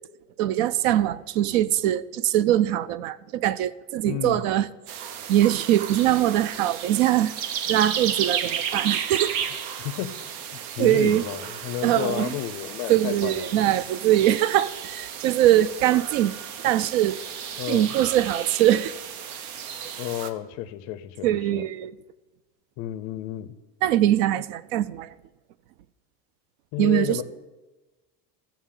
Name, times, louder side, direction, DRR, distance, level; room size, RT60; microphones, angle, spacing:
voice 1, 0.4-7.3 7.7-9.3 10.8-11.2 11.8-12.3 12.9-16.3 16.6-17.2 17.7-18.9 19.8-19.9 21.2-21.9 23.8-25.1 26.8-27.2, right 12 dB, 70° right, 0.5 m, -22 dB
voice 2, 4.0-4.4 9.8-10.1 10.5-13.6 17.6-18.0 20.0-21.6 22.8-23.5 26.7-27.2, left 13 dB, 45° left, 0.4 m, -32 dB
sound 1, 4.9-20.3, right 8 dB, 85° right, 0.9 m, -33 dB
14.0 x 7.2 x 3.7 m
cardioid pair, 180°, 43 cm